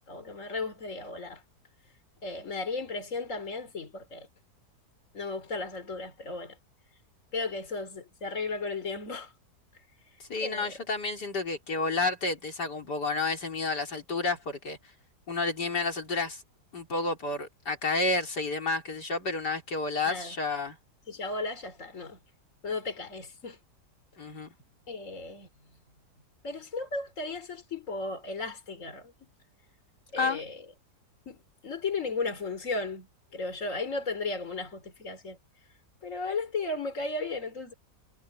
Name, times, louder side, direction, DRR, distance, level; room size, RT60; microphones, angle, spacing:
voice 1, 0.0-1.4 2.2-4.3 5.1-6.6 7.3-9.3 10.4-10.8 20.0-20.3 21.1-22.2 22.6-23.6 24.9-25.5 26.4-29.1 30.1-30.6 31.3-31.4 31.6-35.4 36.0-37.7, left 3 dB, 50° left, 3.7 m, -35 dB
voice 2, 10.2-14.8 15.3-16.4 16.7-20.8 24.2-24.5 30.2-30.4, left 3 dB, 80° left, 4.2 m, -30 dB
omnidirectional pair, 1.8 m